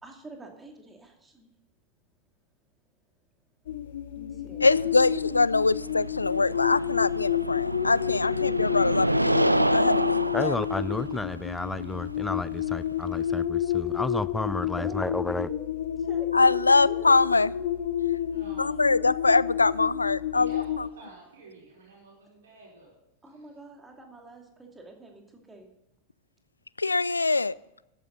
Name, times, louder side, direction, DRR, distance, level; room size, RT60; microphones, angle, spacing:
voice 1, 0.0-1.5 4.1-4.7 14.8-17.4 23.2-25.7, right 2 dB, 10° right, 2.6 m, -46 dB
sound 1, 3.7-20.9, left 10 dB, 60° left, 0.7 m, -30 dB
voice 2, 4.6-10.5 16.3-17.5 18.6-20.5 26.8-27.6, left 3 dB, 80° left, 0.3 m, -23 dB
sound 2, 4.6-13.5, right 1 dB, 85° right, 0.4 m, -29 dB
voice 3, 10.3-15.5, left 2 dB, 10° left, 0.4 m, -31 dB
voice 4, 18.2-19.0 20.3-22.9 23.2-23.4, right 3 dB, 65° right, 4.6 m, -50 dB
14.0 x 10.0 x 3.9 m
figure-of-eight pair, 90°, 0 cm